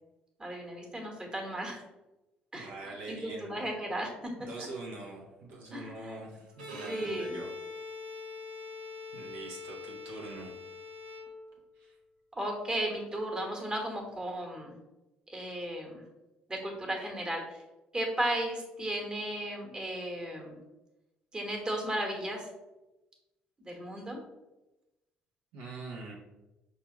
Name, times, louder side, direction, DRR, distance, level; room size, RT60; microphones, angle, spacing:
voice 1, 0.4-1.8 2.5-4.3 5.7-6.2 6.9-7.4 12.4-14.7 15.3-16.0 16.5-17.6 17.9-20.6 21.3-22.5 23.7-24.2, right 1 dB, 20° right, 1 dB, 1.3 m, -35 dB
voice 2, 2.5-3.6 4.5-7.5 9.1-10.5 11.8-11.9 25.5-26.1, right 3 dB, 75° right, -2 dB, 0.9 m, -44 dB
Bowed string instrument, 6.5-11.8, left 3 dB, 90° right, 0.5 m, -43 dB
5.4 x 2.5 x 2.9 m, 1.0 s
hypercardioid pair, 50°, 4 cm